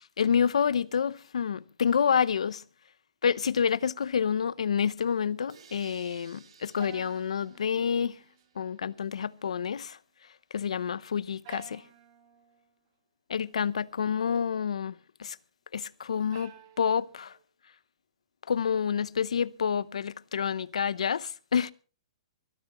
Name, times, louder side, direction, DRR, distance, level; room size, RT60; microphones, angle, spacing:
voice 1, 0.2-2.6 3.2-8.2 8.6-10.0 10.5-11.8 13.3-14.9 15.2-15.4 15.7-17.4 18.5-21.7, left 7 dB, 90° left, 0.7 m, -28 dB
sound 1, 5.5-9.2, right 7 dB, 70° right, 2.9 m, -58 dB
sound 2, 6.8-8.5 8.8-9.4 11.4-12.7 16.3-17.4, right 9 dB, 40° right, 1.7 m, -52 dB
24.0 x 13.5 x 3.0 m
hypercardioid pair, 160°, 3 cm